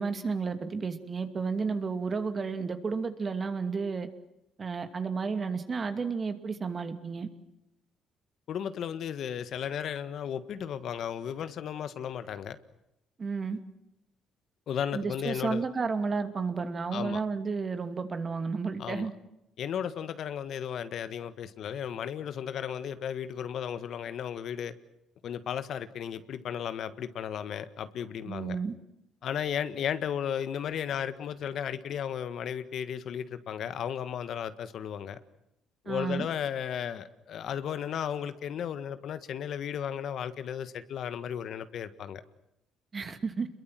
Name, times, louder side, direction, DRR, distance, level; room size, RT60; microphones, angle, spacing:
voice 1, 0.0-4.1 4.6-7.3 13.2-13.6 14.9-19.1 28.3-28.7 35.9-36.3 42.9-43.5, right 4 dB, 35° right, 2.6 m, -32 dB
voice 2, 8.5-12.6 14.7-15.6 16.9-17.2 18.8-19.1 19.6-24.7 25.2-28.6 29.2-35.2 35.8-42.2, left 8 dB, 65° left, 1.5 m, -34 dB
28.0 x 22.0 x 7.7 m
cardioid pair, 95°, 0 cm